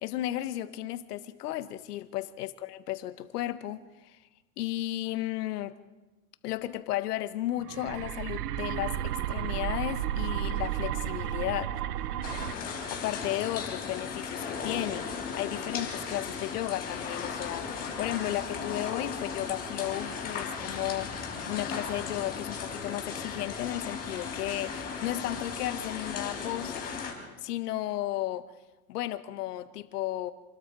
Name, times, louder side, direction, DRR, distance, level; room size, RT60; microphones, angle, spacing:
voice 1, 0.0-4.2 4.6-5.7 6.4-11.7 12.9-15.1 15.3-26.9 27.4-28.5 28.9-30.3, left 14 dB, 85° left, 1.5 m, -34 dB
sound 1, 7.6-12.5, right 12 dB, 80° right, 1.1 m, -32 dB
sound 2, 12.2-27.1, left 5 dB, 20° left, 5.0 m, -36 dB
27.5 x 21.0 x 4.8 m
supercardioid pair, 170°, 45 cm